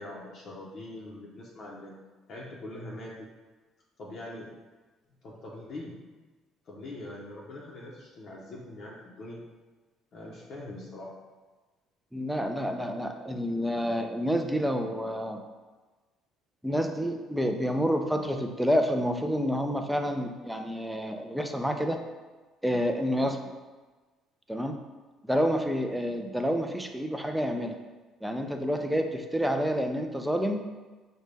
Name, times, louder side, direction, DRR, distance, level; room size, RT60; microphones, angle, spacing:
voice 1, 0.0-2.0 2.3-3.3 4.0-4.6 5.2-6.0 6.6-9.4 10.1-11.2, left 1 dB, 50° left, -4 dB, 0.7 m, -42 dB
voice 2, 12.1-15.4 16.6-22.0 22.6-23.4 24.5-24.8 25.3-27.8 28.2-30.6, equal, 5° right, 4 dB, 0.3 m, -28 dB
5.1 x 2.2 x 3.2 m, 1.3 s
cardioid pair, 115°, 0 cm